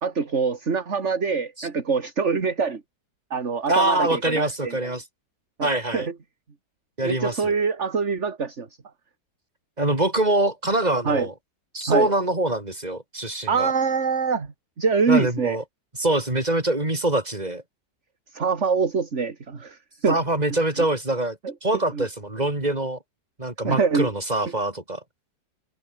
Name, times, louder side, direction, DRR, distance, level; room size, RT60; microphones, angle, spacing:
voice 1, 0.0-2.8 3.3-4.9 5.6-6.1 7.0-8.7 11.0-11.3 11.9-12.1 13.5-15.6 18.3-19.8 20.0-20.2 21.4-21.5 21.9-22.1 23.6-24.1, right 5 dB, 40° right, 2.4 m, -24 dB
voice 2, 3.7-5.0 5.6-6.1 7.0-7.6 9.8-11.3 11.7-13.7 15.1-15.6 16.0-17.6 20.1-23.0 23.4-25.0, right 1 dB, 20° right, 4.7 m, -24 dB
omnidirectional pair, 1.9 m